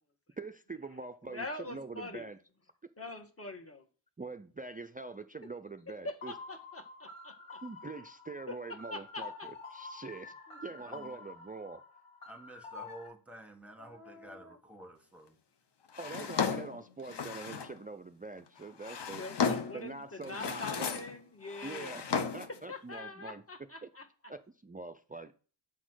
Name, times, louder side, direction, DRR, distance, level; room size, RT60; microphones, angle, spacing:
voice 1, 0.4-2.4 4.2-6.3 7.6-10.4 10.6-11.8 16.0-19.2 19.7-21.0 21.6-23.9 24.3-25.3, right 3 dB, 20° right, 0.3 m, -44 dB
voice 2, 1.3-2.2 3.0-3.8 6.0-7.6 8.5-8.6 8.9-9.5 10.5-10.6 13.8-14.6 19.2-21.9 22.7-24.0, left 2 dB, 30° left, 1.4 m, -44 dB
sound 1, 6.2-13.1, left 4 dB, 85° left, 2.9 m, -48 dB
voice 3, 10.8-11.2 12.3-15.4, right 1 dB, 5° right, 1.7 m, -51 dB
Drawer open or close, 15.9-17.8 18.6-19.8 20.2-21.2 21.4-22.6, left 6 dB, 55° left, 1.0 m, -34 dB
8.9 x 4.1 x 6.2 m
cardioid pair, 85°, 49 cm